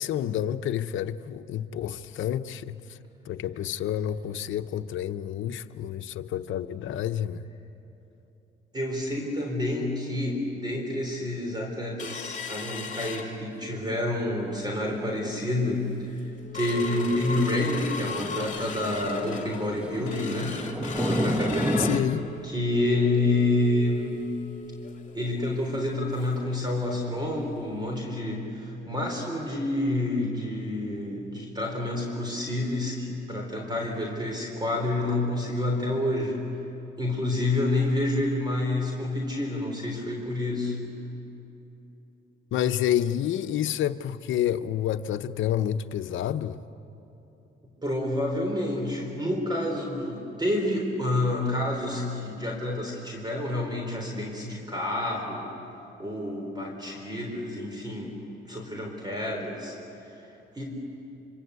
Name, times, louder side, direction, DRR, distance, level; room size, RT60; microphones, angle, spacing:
voice 1, 0.0-3.0 3.3-7.4 21.8-22.3 42.5-46.6, left 11 dB, 75° left, 0.9 m, -29 dB
voice 2, 8.7-20.6 21.0-22.1 22.4-24.3 25.1-36.4 37.0-40.8 47.8-55.5 56.0-58.2 58.5-59.8 60.1-60.2 60.5-60.9, left 1 dB, 20° right, 4.3 m, -28 dB
sound 1, 12.0-13.9 14.3-14.4 14.7-15.0 15.5-15.6 16.0-26.5 26.8-26.9 27.3-27.5 28.0-28.1, left 5 dB, 40° left, 2.9 m, -38 dB
sound 2, 16.8-22.0, equal, 5° right, 1.2 m, -31 dB
26.0 x 25.5 x 8.3 m
cardioid pair, 90°, 20 cm